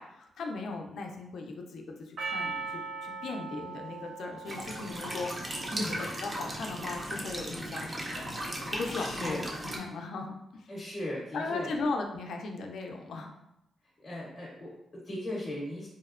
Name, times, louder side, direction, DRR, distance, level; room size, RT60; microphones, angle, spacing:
voice 1, 0.0-8.3 8.7-10.7 11.3-13.3, left 3 dB, 75° left, 3 dB, 0.3 m, -38 dB
Percussion, 2.2-6.7, right 4 dB, 85° right, 0.4 m, -40 dB
sound 1, 4.4-9.8, right 1 dB, 25° right, 0.4 m, -37 dB
voice 2, 8.9-9.5 10.7-11.7 14.0-15.9, left 1 dB, 30° left, -5 dB, 0.6 m, -37 dB
2.6 x 2.0 x 2.4 m, 0.86 s
cardioid pair, 105°, 0 cm